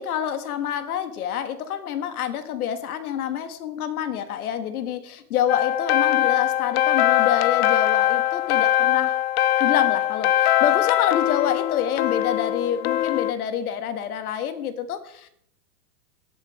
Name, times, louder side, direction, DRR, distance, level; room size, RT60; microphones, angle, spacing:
voice 1, 0.0-9.2 9.6-15.3, left 9 dB, 65° left, 10 dB, 1.5 m, -27 dB
sound 1, 5.5-13.3, left 13 dB, 40° left, 0.5 m, -21 dB
17.5 x 8.7 x 3.1 m, 0.69 s
hypercardioid pair, 135°, 48 cm